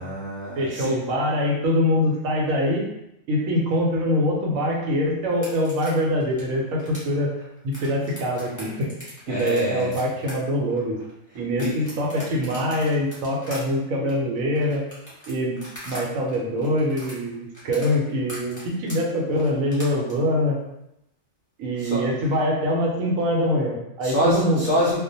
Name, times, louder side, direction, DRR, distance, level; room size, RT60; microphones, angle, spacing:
voice 1, 0.0-0.9 9.3-9.9 11.6-11.8 21.8-22.1 24.0-25.0, equal, 70° left, -6 dB, 0.4 m, -25 dB
voice 2, 0.6-2.9 3.3-7.3 7.6-11.0 11.3-14.8 15.3-15.6 15.8-20.6 21.6-24.6, left 1 dB, 85° right, -1 dB, 1.0 m, -24 dB
sound 1, 5.3-16.0 16.3-20.1, left 1 dB, 15° left, 0.8 m, -41 dB
2.4 x 2.1 x 2.6 m, 0.84 s
omnidirectional pair, 1.4 m